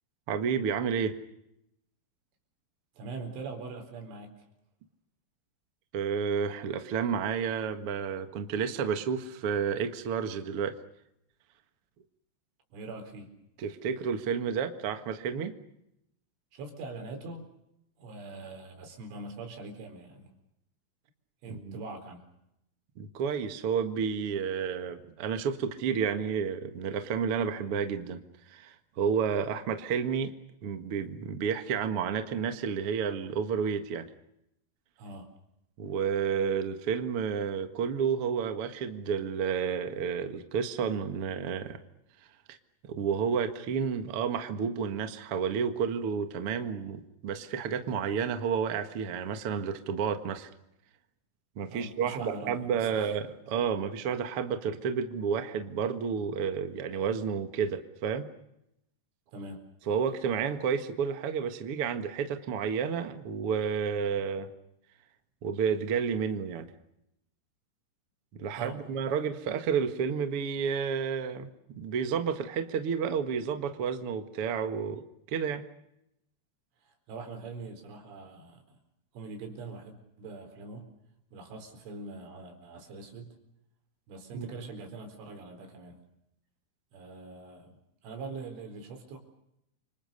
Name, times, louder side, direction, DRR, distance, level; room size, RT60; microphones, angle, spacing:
voice 1, 0.3-1.2 5.9-10.7 13.6-15.5 21.5-21.8 23.0-28.2 28.5-30.3 30.6-34.1 35.8-41.8 42.5-42.6 42.8-50.5 51.6-58.3 59.9-64.5 65.4-66.7 68.3-75.0 75.3-75.6 84.3-84.5, right 6 dB, 65° right, 8 dB, 1.4 m, -31 dB
voice 2, 3.0-4.5 12.7-13.3 16.5-17.5 18.0-20.3 21.4-22.3 35.0-35.3 51.7-53.2 59.3-59.6 68.5-68.8 76.8-78.8 79.1-80.9 81.3-83.4 84.1-86.0 86.9-87.8 88.0-89.2, right 3 dB, 80° right, 5 dB, 6.7 m, -42 dB
29.5 x 25.5 x 6.7 m, 0.82 s
omnidirectional pair, 5.4 m